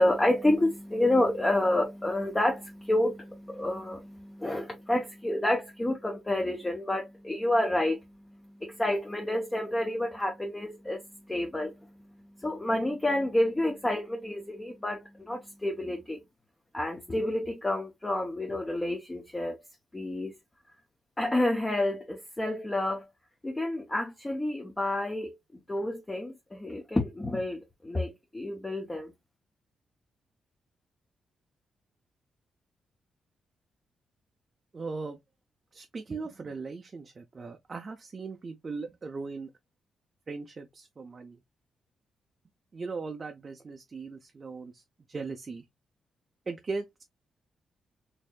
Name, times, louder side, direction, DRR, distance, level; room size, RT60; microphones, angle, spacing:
voice 1, 0.0-16.2 16.7-19.6 19.9-20.3 21.2-23.1 23.4-29.1, left 1 dB, 15° left, 0.7 m, -29 dB
voice 2, 34.7-35.2 35.7-39.5 40.3-41.4 42.7-44.8 45.1-45.6 46.5-47.0, right 4 dB, 35° right, 0.5 m, -38 dB
4.3 x 2.7 x 2.3 m
cardioid pair, 125°, 0 cm